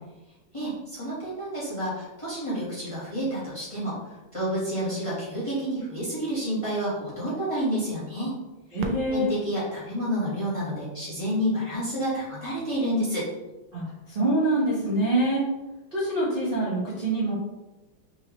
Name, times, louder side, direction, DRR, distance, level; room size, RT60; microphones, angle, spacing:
voice 1, 0.5-8.4 9.1-13.3, equal, 20° left, -9 dB, 1.3 m, -29 dB
voice 2, 8.7-9.3 13.7-15.4 15.9-17.3, right 1 dB, 35° right, -11 dB, 1.0 m, -25 dB
Fireworks, 8.8-11.5 12.2-12.3 13.0-13.5 15.4-15.5, right 2 dB, 75° right, 1.2 m, -41 dB
4.4 x 3.5 x 3.0 m, 1.1 s
omnidirectional pair, 2.2 m